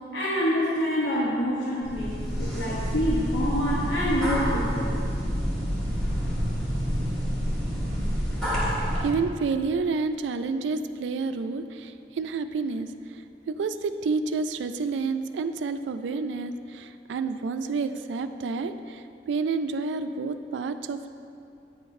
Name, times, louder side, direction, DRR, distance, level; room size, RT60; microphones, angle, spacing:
voice 1, 0.1-2.1 2.4-5.0, equal, 85° left, -7 dB, 1.1 m, -26 dB
sound 1, 1.8-9.1, equal, 5° left, 1.7 m, -28 dB
voice 2, 9.0-12.9 13.5-21.1, right 4 dB, 90° right, 10 dB, 0.3 m, -29 dB
9.8 x 5.8 x 2.6 m, 2.5 s
head